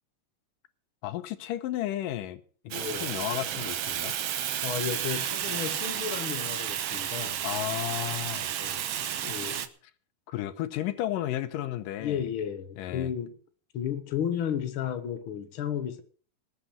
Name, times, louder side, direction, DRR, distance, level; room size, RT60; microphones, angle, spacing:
voice 1, 1.0-2.4 2.9-4.2 7.4-8.5 9.2-9.3 10.3-12.2 12.8-13.1, left 13 dB, 85° left, 2.6 m, -33 dB
voice 2, 2.7-3.1 4.6-7.4 8.6-8.9 9.3-9.7 12.0-13.3 13.7-16.0, left 9 dB, 50° left, 1.8 m, -33 dB
Fire, 2.7-9.7, right 10 dB, 65° right, 1.5 m, -32 dB
20.0 x 8.3 x 5.7 m
omnidirectional pair, 3.8 m